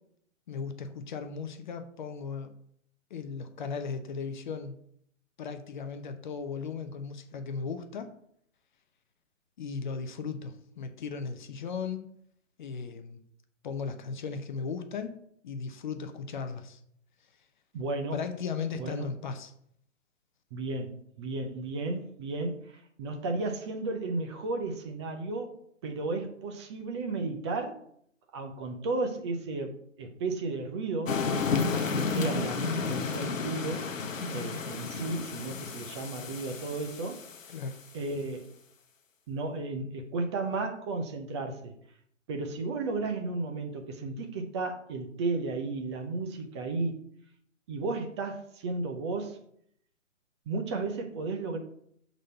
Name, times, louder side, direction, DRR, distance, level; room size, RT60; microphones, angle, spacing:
voice 1, 0.5-2.5 3.1-4.8 5.4-8.1 9.6-12.0 12.6-13.2 13.6-15.1 15.4-16.8 18.1-19.5 37.5-37.8, left 5 dB, 40° left, 8 dB, 0.7 m, -36 dB
voice 2, 17.7-18.2 18.8-19.1 20.5-25.6 25.8-27.8 28.3-31.2 31.6-33.8 34.3-37.2 37.9-38.5 39.3-41.7 42.3-47.0 47.7-49.4 50.5-51.6, right 3 dB, 20° right, 3 dB, 0.6 m, -34 dB
sound 1, 31.1-37.7, left 4 dB, 80° left, 0.9 m, -32 dB
6.3 x 4.0 x 5.4 m, 0.68 s
figure-of-eight pair, 130°, 39 cm